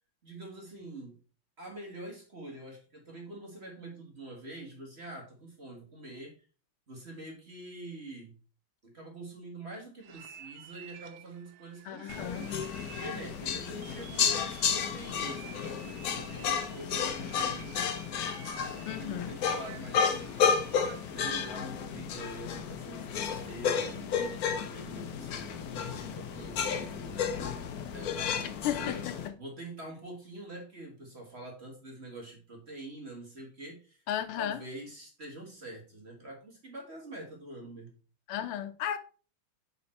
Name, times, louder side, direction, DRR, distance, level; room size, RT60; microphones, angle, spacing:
voice 1, 0.2-1.2 1.6-6.4 6.9-8.4 8.8-12.5 13.0-17.8 18.7-20.5 20.8-29.1 29.4-34.0 34.4-37.9, right 1 dB, 30° right, 1.6 m, -45 dB
sound 1, 10.0-21.2, right 9 dB, 90° right, 1.7 m, -51 dB
voice 2, 11.8-12.5 18.9-19.3 28.6-29.3 34.1-34.6 38.3-39.0, left 11 dB, 80° left, 1.5 m, -34 dB
sound 2, 12.1-29.3, left 7 dB, 65° left, 0.9 m, -32 dB
6.9 x 4.3 x 4.2 m
omnidirectional pair, 2.4 m